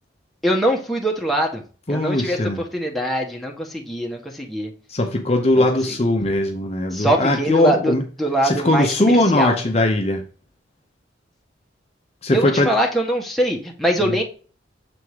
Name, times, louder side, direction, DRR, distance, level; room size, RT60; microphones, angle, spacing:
voice 1, 0.4-1.6 1.9-2.4 2.7-4.7 5.6-5.7 6.9-9.6 12.3-14.2, right 1 dB, ahead, 0 dB, 1.2 m, -22 dB
voice 2, 1.9-2.6 4.9-8.0 8.4-10.3 12.2-12.7 14.0-14.1, left 1 dB, 35° left, 3 dB, 0.8 m, -19 dB
6.9 x 3.7 x 4.7 m, 0.38 s
head